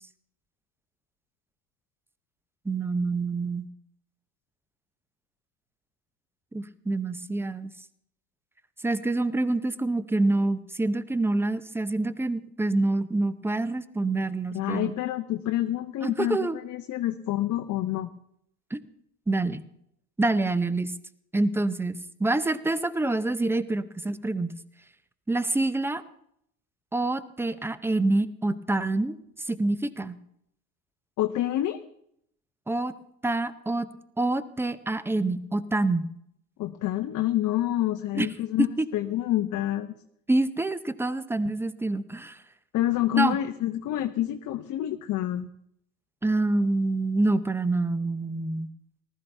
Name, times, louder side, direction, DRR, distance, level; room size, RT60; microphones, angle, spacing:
voice 1, 2.7-3.7 6.5-7.7 8.8-14.9 16.0-16.6 18.7-18.8 19.3-19.6 20.2-20.9 21.3-24.5 25.3-26.0 26.9-29.2 29.5-30.2 32.7-32.9 33.2-33.9 34.2-36.1 38.1-38.3 38.6-38.9 40.3-42.4 43.1-43.4 46.2-48.7, right 2 dB, 5° right, 15 dB, 0.6 m, -26 dB
voice 2, 14.5-18.1 31.2-31.8 36.6-38.7 38.9-39.9 42.7-45.5, left 13 dB, 40° left, 7 dB, 0.8 m, -27 dB
19.0 x 13.0 x 3.4 m, 0.72 s
hypercardioid pair, 75°, 47 cm